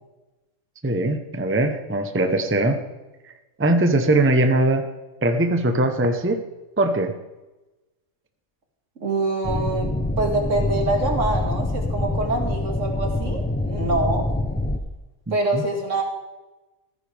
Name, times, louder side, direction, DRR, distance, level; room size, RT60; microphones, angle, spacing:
voice 1, 0.8-2.8 3.6-4.9 5.2-6.4 6.8-7.1 15.3-15.6, right 2 dB, 10° right, 6 dB, 0.8 m, -21 dB
voice 2, 9.0-9.9 10.2-14.2 15.3-16.0, right 2 dB, 70° right, 2 dB, 2.5 m, -25 dB
sound 1, 9.4-14.8, left 1 dB, 10° left, 0.5 m, -25 dB
15.0 x 14.5 x 3.5 m, 1.1 s
omnidirectional pair, 1.3 m